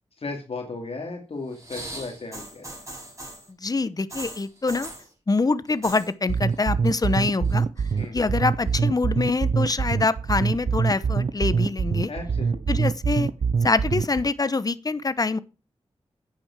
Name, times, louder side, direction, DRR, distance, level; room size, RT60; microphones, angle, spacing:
voice 1, 0.2-2.8 8.0-8.2 12.1-12.8, left 3 dB, 65° left, 2.3 m, -35 dB
sound 1, 1.5-3.5 4.1-5.1 5.7-6.1 6.4-6.9 7.2-8.0 8.7-8.8, right 1 dB, 30° right, 6.9 m, -39 dB
voice 2, 3.6-4.9 5.3-7.6 8.1-12.1 12.7-13.3 13.6-15.4, left 3 dB, 35° left, 0.8 m, -25 dB
sound 2, 6.3-14.3, right 5 dB, 70° right, 0.7 m, -24 dB
9.0 x 8.9 x 6.0 m
wide cardioid pair, 80°, 11 cm